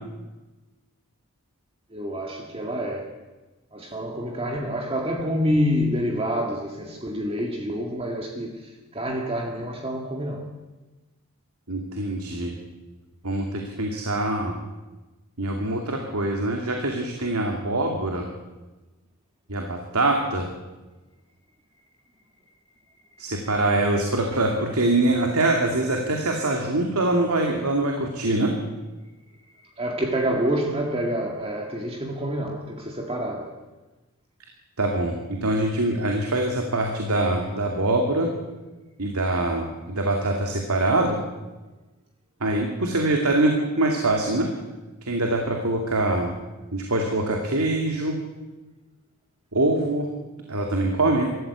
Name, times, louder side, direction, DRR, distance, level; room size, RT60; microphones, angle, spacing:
voice 1, 1.9-3.1 3.7-10.5 29.8-33.6, equal, 25° right, 2.0 m, -27 dB
voice 2, 11.7-12.6 13.2-14.5 15.4-18.3 19.5-20.5 23.2-28.5 34.8-38.3 39.0-41.2 42.4-44.5 45.0-46.3 46.7-48.1 49.5-50.1 50.5-51.3, right 2 dB, 80° right, 2.7 m, -24 dB
24.5 x 14.5 x 8.3 m
head